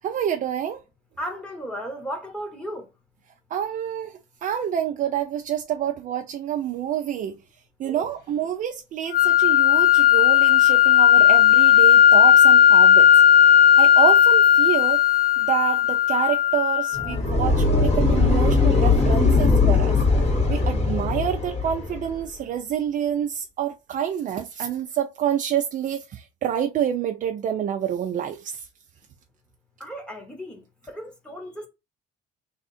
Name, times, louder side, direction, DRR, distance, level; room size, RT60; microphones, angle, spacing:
voice 1, 0.0-0.8 3.5-7.3 7.8-13.1 13.8-15.0 15.4-20.0 20.5-28.7, right 9 dB, 50° right, 0.5 m, -27 dB
voice 2, 1.2-2.9 7.8-8.1 29.8-31.7, equal, 5° left, 1.4 m, -35 dB
sound 1, 9.1-17.1, left 10 dB, 75° left, 1.4 m, -15 dB
sound 2, 16.9-22.1, left 3 dB, 40° left, 1.8 m, -20 dB
3.5 x 2.4 x 4.1 m
cardioid pair, 110°, 17 cm